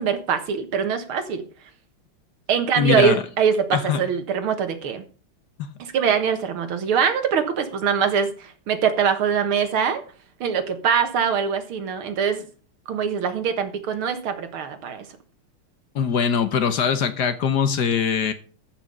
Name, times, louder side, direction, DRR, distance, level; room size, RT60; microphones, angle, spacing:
voice 1, 0.0-1.4 2.5-5.0 5.8-10.0 10.4-12.5 12.9-15.1, right 7 dB, 80° right, 8 dB, 2.3 m, -23 dB
voice 2, 2.8-3.2 3.7-4.0 15.9-18.3, left 7 dB, 60° left, 10 dB, 1.4 m, -22 dB
14.0 x 6.0 x 5.3 m, 0.40 s
omnidirectional pair, 2.3 m